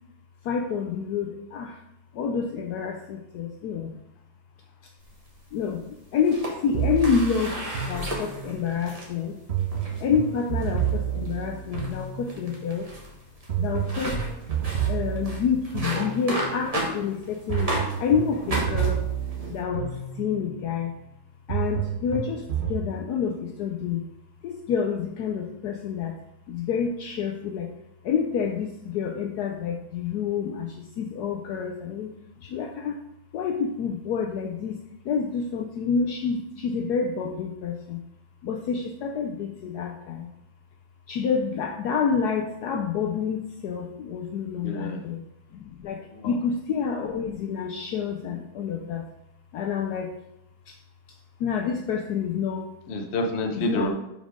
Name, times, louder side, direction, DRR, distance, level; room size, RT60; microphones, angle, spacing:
voice 1, 0.4-1.8 2.1-3.9 5.5-5.8 6.1-7.6 7.9-9.4 10.0-12.9 13.6-14.2 14.9-19.0 19.5-20.9 21.5-24.0 24.4-26.1 26.5-27.7 28.0-32.1 32.4-33.0 33.3-38.0 38.4-40.3 41.1-45.2 45.5-49.0 49.5-50.1 50.7-50.8 51.4-52.7 53.5-53.9, left 6 dB, 85° left, 1 dB, 0.8 m, -28 dB
sound 1, 5.0-5.8 6.2-9.1 9.6-10.0 10.6-10.9 11.3-11.4 11.7-18.0 18.3-19.6, right 1 dB, 25° right, 0.9 m, -34 dB
sound 2, 6.7-8.6 9.5-12.6 13.5-16.6 17.5-20.5 21.5-22.9, right 9 dB, 60° right, 0.7 m, -30 dB
voice 2, 44.6-45.0 46.1-46.3 52.9-53.9, left 2 dB, 55° left, 3 dB, 0.7 m, -28 dB
5.3 x 5.0 x 5.1 m, 0.86 s
omnidirectional pair, 2.3 m